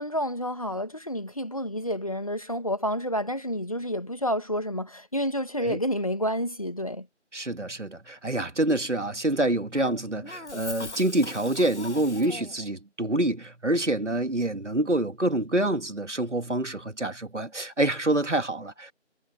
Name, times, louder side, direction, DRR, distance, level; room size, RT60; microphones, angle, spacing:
voice 1, 0.0-7.1, equal, 30° left, 2.1 m, -29 dB
voice 2, 7.3-18.9, right 1 dB, 75° right, 2.4 m, -27 dB
Cough, 9.7-12.7, left 2 dB, 70° left, 2.0 m, -40 dB
figure-of-eight pair, 175°, 36 cm